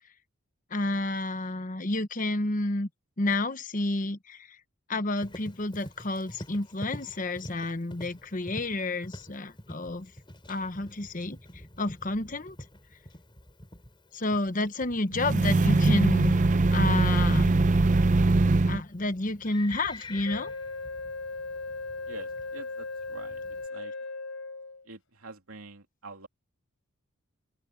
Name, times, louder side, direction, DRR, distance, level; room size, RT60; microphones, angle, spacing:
voice 1, 0.7-2.9 3.2-4.6 4.9-10.1 10.5-11.4 11.8-12.6 14.1-16.4 16.7-17.5 18.7-20.5, left 2 dB, 35° left, 1.0 m, -30 dB
Livestock farm animals working animals, 5.2-23.7, left 1 dB, 20° left, 4.6 m, -47 dB
sound 1, 15.1-18.8, right 3 dB, 35° right, 0.5 m, -22 dB
Wind instrument woodwind instrument, 20.2-24.9, left 3 dB, 60° left, 4.6 m, -37 dB
voice 2, 22.1-23.4 23.7-23.9 24.9-26.3, right 3 dB, 75° right, 3.1 m, -46 dB
open air
head